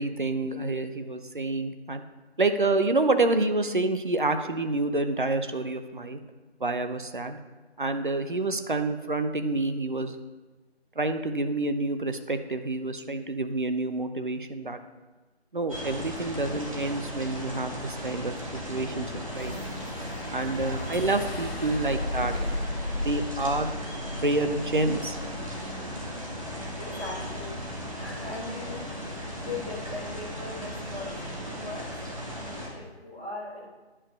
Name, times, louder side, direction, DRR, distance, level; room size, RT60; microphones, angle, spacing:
voice 1, 0.0-2.0 2.4-6.2 6.6-7.4 7.8-10.1 11.0-14.8 15.5-19.5 20.3-22.3 23.0-23.7 24.2-25.2, right 2 dB, 50° right, 8 dB, 0.7 m, -28 dB
sound 1, 15.7-32.7, equal, 30° right, 1.4 m, -36 dB
sound 2, 19.3-25.7, left 1 dB, 65° left, 1.2 m, -36 dB
voice 2, 22.0-22.4 22.8-22.9 26.8-28.9 29.4-31.9 32.4-33.7, left 2 dB, 10° right, -8 dB, 1.0 m, -40 dB
9.9 x 4.9 x 5.3 m, 1.2 s
figure-of-eight pair, 165°, 33 cm